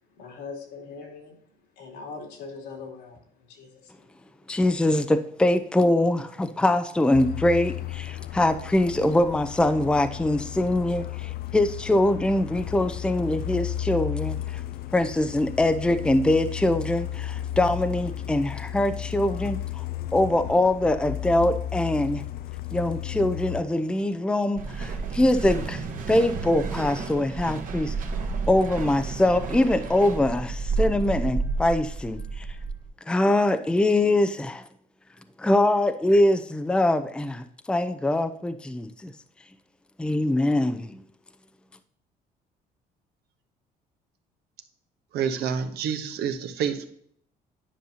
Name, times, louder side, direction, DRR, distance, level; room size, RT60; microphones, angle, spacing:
voice 1, 0.2-1.4 1.7-4.1 4.5-4.6, left 4 dB, 80° left, 0 dB, 2.9 m, -41 dB
voice 2, 4.5-14.6 14.9-19.8 20.1-22.2 22.7-25.8 26.1-27.9 28.5-32.5 33.1-34.6 35.4-39.1 40.0-41.0, left 1 dB, 5° left, 10 dB, 0.5 m, -23 dB
Truck, 7.1-23.6, left 12 dB, 65° left, 0.4 m, -34 dB
sound 1, 24.6-32.9, right 4 dB, 50° right, 1.3 m, -31 dB
voice 3, 45.1-46.9, right 7 dB, 75° right, 8 dB, 1.0 m, -28 dB
10.5 x 5.4 x 2.8 m, 0.65 s
cardioid pair, 110°, 17 cm